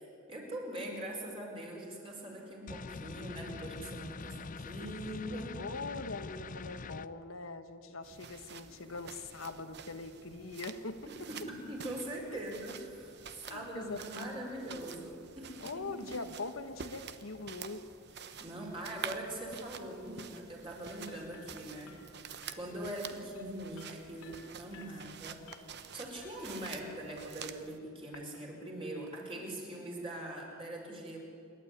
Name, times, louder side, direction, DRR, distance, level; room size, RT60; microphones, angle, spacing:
voice 1, 0.3-5.6 11.3-16.1 18.1-25.7 25.9-31.2, right 1 dB, 25° right, -1 dB, 4.9 m, -42 dB
sound 1, 2.7-7.1, left 4 dB, 35° left, 0.5 m, -44 dB
voice 2, 4.2-4.7 5.6-11.0 12.3-12.4 13.5-14.4 15.6-17.8, left 3 dB, 75° left, 8 dB, 1.2 m, -42 dB
sound 2, 8.0-27.8, right 7 dB, 50° right, 0.9 m, -48 dB
sound 3, 20.8-28.4, left 6 dB, 90° left, 2.8 m, -59 dB
27.5 x 11.5 x 9.7 m, 2.7 s
head